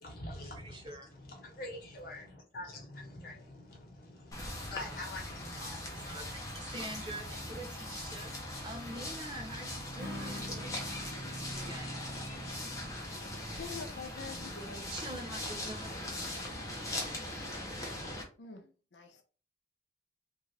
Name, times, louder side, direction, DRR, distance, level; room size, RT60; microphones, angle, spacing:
voice 1, 0.0-6.2, left 2 dB, 55° left, 1.1 m, -46 dB
voice 2, 0.6-1.1 5.6-12.0 14.9-16.0, right 1 dB, 25° right, 0.5 m, -45 dB
sound 1, 4.3-18.2, left 1 dB, 20° left, 0.7 m, -40 dB
Acoustic guitar / Strum, 10.0-13.2, left 1 dB, 55° right, 1.0 m, -47 dB
voice 3, 13.6-14.9 18.4-19.2, left 5 dB, 80° left, 0.6 m, -46 dB
2.6 x 2.4 x 3.2 m
head